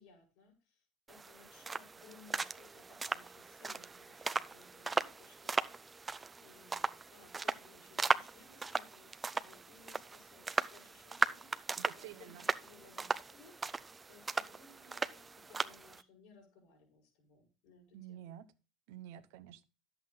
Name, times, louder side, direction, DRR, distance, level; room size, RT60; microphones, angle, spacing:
voice 1, 0.0-6.0 6.4-18.4, left 5 dB, 70° left, 5.3 m, -62 dB
sound 1, 1.1-16.0, right 4 dB, 25° right, 0.7 m, -38 dB
voice 2, 11.8-12.5 17.9-18.5 18.9-19.6, right 12 dB, 75° right, 0.9 m, -50 dB
11.0 x 8.2 x 3.8 m
hypercardioid pair, 80°, 0 cm